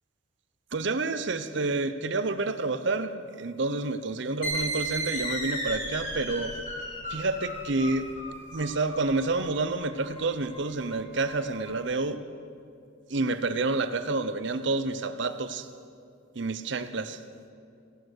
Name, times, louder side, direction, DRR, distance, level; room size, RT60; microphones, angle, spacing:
voice 1, 0.7-6.6 7.1-8.1 8.5-12.2 13.1-15.7 16.3-17.2, right 3 dB, 60° right, 11 dB, 0.7 m, -29 dB
sound 1, 4.4-11.7, right 1 dB, 40° left, 5.0 m, -35 dB
17.0 x 11.0 x 6.5 m, 2.4 s
head